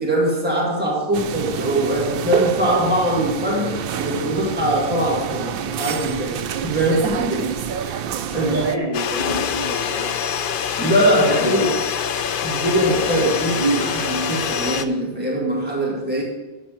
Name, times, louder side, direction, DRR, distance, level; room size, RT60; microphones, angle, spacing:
voice 1, 0.0-7.5 7.8-8.0 8.3-8.7 10.8-11.8 12.4-16.2, right 1 dB, 10° right, -3 dB, 1.9 m, -22 dB
sound 1, 1.1-8.8, right 8 dB, 70° right, 0.7 m, -28 dB
voice 2, 8.3-10.2 11.2-11.7 13.1-13.3 13.5-13.9, right 2 dB, 40° right, -3 dB, 2.0 m, -27 dB
sound 2, 8.9-14.8, left 7 dB, 65° left, 0.7 m, -25 dB
12.5 x 4.4 x 7.4 m, 1.1 s
omnidirectional pair, 1.0 m